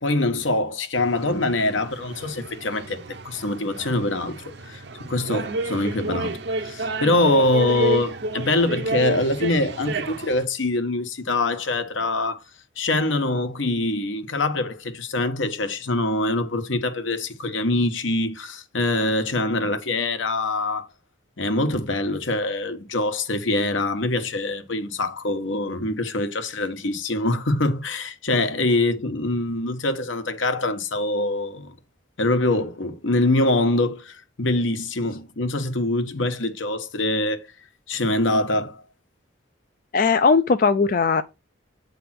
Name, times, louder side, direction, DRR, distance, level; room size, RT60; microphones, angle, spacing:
voice 1, 0.0-12.4 12.8-20.9 21.4-31.7 32.2-37.5 37.9-38.8, left 2 dB, 80° left, 1.2 m, -24 dB
sound 1, 0.9-10.4, right 2 dB, 60° right, 0.7 m, -31 dB
voice 2, 39.9-41.2, left 4 dB, 45° left, 0.3 m, -18 dB
8.6 x 3.4 x 5.8 m
head